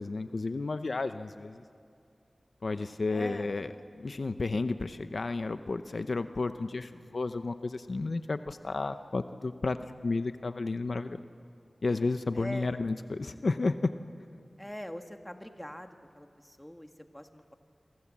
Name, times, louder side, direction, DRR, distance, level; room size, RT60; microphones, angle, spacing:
voice 1, 0.0-1.6 2.6-11.2 11.8-13.8, left 3 dB, 65° left, 10 dB, 0.8 m, -32 dB
voice 2, 3.1-3.5 12.3-12.8 14.6-17.5, equal, 10° left, 6 dB, 1.6 m, -43 dB
28.5 x 23.5 x 7.5 m, 2.4 s
wide cardioid pair, 80°, 0 cm